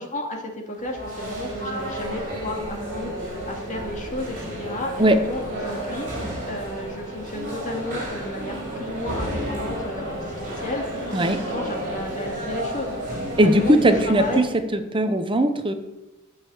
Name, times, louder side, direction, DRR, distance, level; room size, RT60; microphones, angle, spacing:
voice 1, 0.0-14.4, left 1 dB, 35° left, 1 dB, 2.3 m, -33 dB
sound 1, 0.7-14.4, right 1 dB, 40° right, 5.3 m, -32 dB
voice 2, 5.0-5.3 11.1-11.4 13.4-15.7, right 1 dB, 25° right, 8 dB, 0.9 m, -19 dB
11.5 x 6.6 x 7.9 m, 0.99 s
head